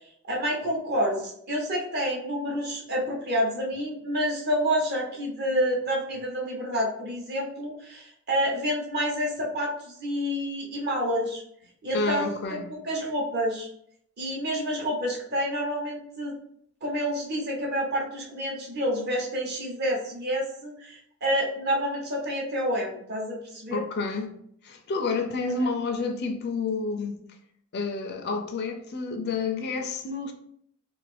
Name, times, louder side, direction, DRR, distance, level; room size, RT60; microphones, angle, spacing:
voice 1, 0.2-11.4 11.8-12.6 12.8-13.7 14.2-16.4 16.8-23.8, equal, 50° right, 0.9 m, -28 dB
voice 2, 11.9-12.7 23.7-24.4 24.6-27.2 27.7-30.3, left 4 dB, 50° left, 0.4 m, -29 dB
2.5 x 2.4 x 3.3 m
head